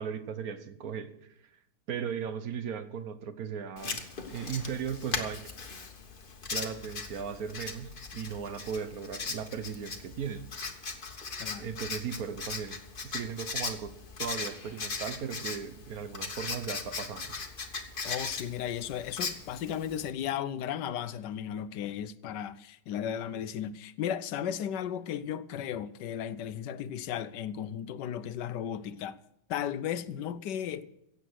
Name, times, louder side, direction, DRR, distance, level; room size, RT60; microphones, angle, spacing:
voice 1, 0.0-1.3 1.9-5.5 6.5-10.5 11.6-12.8 13.0-17.4, right 7 dB, 60° right, 1.4 m, -37 dB
Writing, 3.8-20.1, left 4 dB, 30° left, 1.4 m, -39 dB
voice 2, 18.0-29.2 29.5-30.9, left 9 dB, 80° left, 1.3 m, -35 dB
16.0 x 8.0 x 6.3 m
omnidirectional pair, 1.9 m